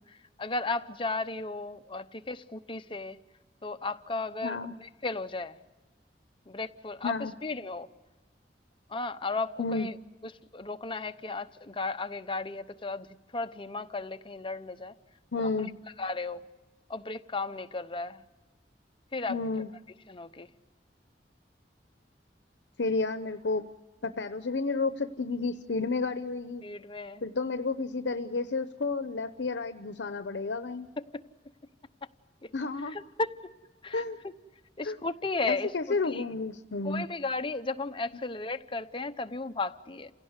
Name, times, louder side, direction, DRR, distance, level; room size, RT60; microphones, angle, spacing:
voice 1, 0.4-3.2 3.6-5.6 6.5-7.1 7.4-7.9 8.9-9.9 10.2-14.9 16.0-16.4 16.9-18.2 19.1-19.4 20.1-20.5 26.6-27.2 32.4-32.5 32.8-33.3 33.8-34.4 34.8-35.7 36.0-36.2 36.8-40.1, left 3 dB, 30° left, 0.8 m, -35 dB
voice 2, 4.4-4.7 7.0-7.3 9.6-9.9 15.3-15.7 19.3-19.7 22.8-23.7 24.0-26.6 27.2-30.9 32.5-33.0 33.9-34.2 34.8-35.0 35.4-37.1, left 3 dB, 80° left, 0.8 m, -31 dB
29.0 x 17.0 x 8.1 m
head